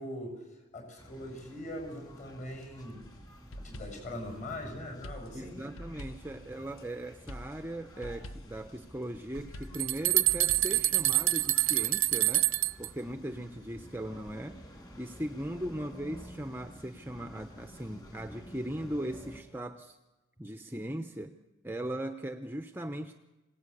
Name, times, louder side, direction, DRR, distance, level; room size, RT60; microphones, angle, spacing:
voice 1, 0.0-3.0 3.6-5.6, left 1 dB, 35° left, 3 dB, 7.7 m, -41 dB
sound 1, 1.0-19.4, equal, 20° left, 3.2 m, -51 dB
sound 2, 3.0-4.2 5.0-6.8 7.3-8.7 9.5-11.3, equal, 80° left, 1.1 m, -46 dB
voice 2, 5.3-12.5 12.8-14.6 15.0-20.0 20.4-21.4 21.6-23.2, right 1 dB, 10° right, 7 dB, 0.7 m, -39 dB
sound 3, 9.4-9.5 9.7-12.9, right 16 dB, 80° right, 0.7 m, -26 dB
26.5 x 18.0 x 8.5 m, 1.1 s
head